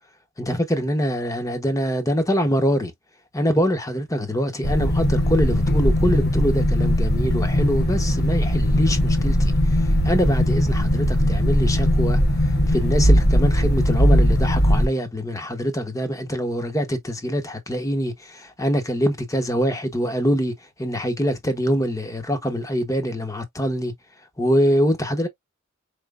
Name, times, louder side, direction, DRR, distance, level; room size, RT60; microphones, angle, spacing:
voice 1, 0.4-2.9 3.3-9.5 9.8-20.5 20.8-23.9 24.4-25.3, equal, 15° left, 1.0 m, -24 dB
sound 1, 4.6-14.9, equal, 50° left, 1.1 m, -19 dB
4.5 x 3.5 x 2.4 m
head